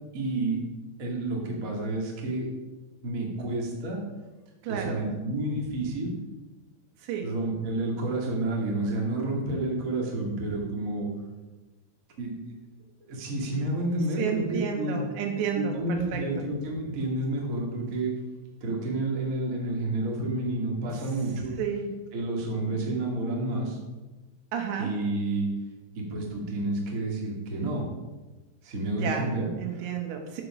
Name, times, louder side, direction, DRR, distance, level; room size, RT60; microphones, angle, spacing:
voice 1, 0.1-0.6 1.0-2.4 3.0-4.0 4.7-6.1 7.2-11.1 12.2-12.3 13.1-15.0 15.5-18.1 18.6-21.5 22.1-23.8 24.8-25.5 25.9-27.9 28.6-29.9, right 2 dB, 60° right, -1 dB, 0.8 m, -30 dB
voice 2, 4.6-5.0 7.0-7.3 14.2-16.2 21.6-21.9 24.5-24.9 28.9-29.3 29.6-30.4, right 7 dB, 80° right, 2 dB, 3.5 m, -31 dB
8.5 x 6.8 x 6.1 m, 1.2 s
omnidirectional pair, 5.1 m